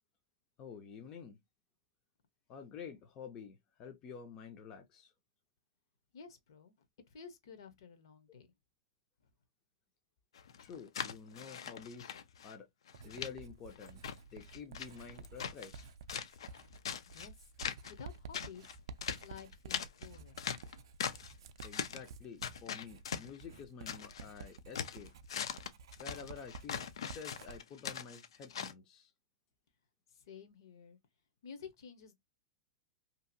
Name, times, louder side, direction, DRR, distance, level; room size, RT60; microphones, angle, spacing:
voice 1, 0.6-1.4 2.5-5.1 10.6-12.1 12.4-12.7 13.0-14.0 14.3-15.9 21.6-25.1 26.0-26.8 27.1-29.1, left 6 dB, 20° left, 0.4 m, -49 dB
voice 2, 6.1-6.8 7.1-8.5 17.0-17.5 17.9-18.8 19.2-20.4 30.1-31.0 31.4-32.1, left 6 dB, 65° left, 0.7 m, -52 dB
sound 1, 10.4-12.6 12.9-13.3 13.7-15.8 16.1-17.3 17.6-18.0 18.3-21.3 21.6-22.1 22.4-24.2 24.5-28.7, left 8 dB, 90° left, 0.4 m, -41 dB
Writing, 12.9-27.6, right 5 dB, 65° right, 0.3 m, -52 dB
2.7 x 2.4 x 2.5 m
supercardioid pair, 175°, 3 cm